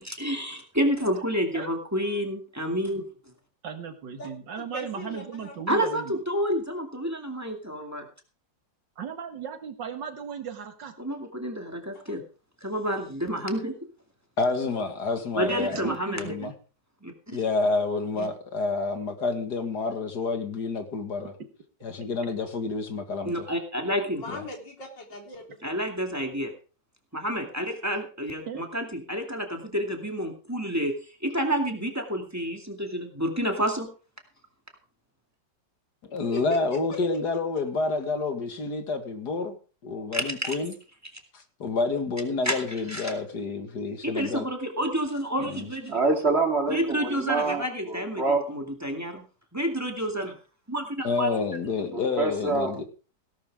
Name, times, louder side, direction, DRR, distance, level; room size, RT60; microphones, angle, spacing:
voice 1, 0.0-3.1 5.7-8.1 11.0-12.2 12.6-13.7 15.3-16.2 17.0-17.4 18.2-18.3 23.2-24.2 25.6-26.5 27.1-30.9 31.2-33.9 40.1-40.5 42.4-42.6 42.9-43.1 44.0-46.0 46.7-49.2 49.5-50.3 50.7-51.3, equal, 10° right, 3 dB, 2.2 m, -29 dB
voice 2, 3.6-6.2 9.0-10.9 15.7-16.5 28.5-28.6, right 7 dB, 80° right, 7 dB, 2.3 m, -36 dB
voice 3, 4.7-5.5 11.9-12.2 24.1-25.7 36.3-36.8, left 1 dB, 85° left, 1 dB, 4.2 m, -39 dB
voice 4, 14.4-16.5 17.3-21.3 21.8-23.5 24.3-24.4 36.1-39.6 39.8-40.7 41.3-44.4 45.5-45.7 51.0-52.8, left 3 dB, 65° left, 7 dB, 2.3 m, -29 dB
voice 5, 45.9-48.5 51.9-52.8, right 3 dB, 35° right, 3 dB, 2.8 m, -26 dB
17.5 x 11.5 x 3.6 m, 0.37 s
omnidirectional pair, 1.9 m